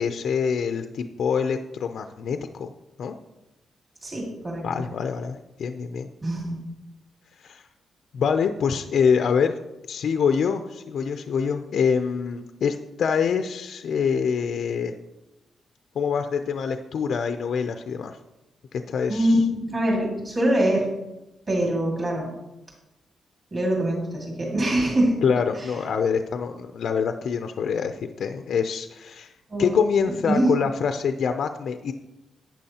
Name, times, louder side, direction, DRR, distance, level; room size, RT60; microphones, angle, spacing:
voice 1, 0.0-2.7 3.0-3.2 4.6-6.1 7.4-7.6 8.1-9.5 9.9-14.9 16.0-18.2 18.7-19.4 25.2-29.3 29.6-31.9, left 6 dB, 60° left, 7 dB, 0.4 m, -25 dB
voice 2, 4.0-4.9 6.2-6.6 19.1-20.9 21.5-22.3 23.5-25.2 25.6-25.7 29.5-30.5, right 1 dB, 25° right, -2 dB, 2.1 m, -24 dB
11.5 x 8.9 x 2.9 m, 0.96 s
wide cardioid pair, 175°, 0 cm